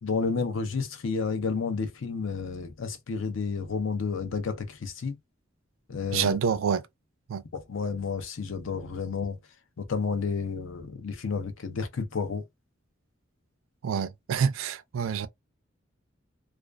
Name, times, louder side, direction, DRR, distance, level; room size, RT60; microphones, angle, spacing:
voice 1, 0.0-5.2 5.9-6.4 7.5-9.4 9.8-12.4, left 5 dB, 70° left, 0.5 m, -31 dB
voice 2, 6.1-6.8 7.3-7.4 13.8-15.3, right 7 dB, 80° right, 0.4 m, -27 dB
2.3 x 2.3 x 2.2 m
head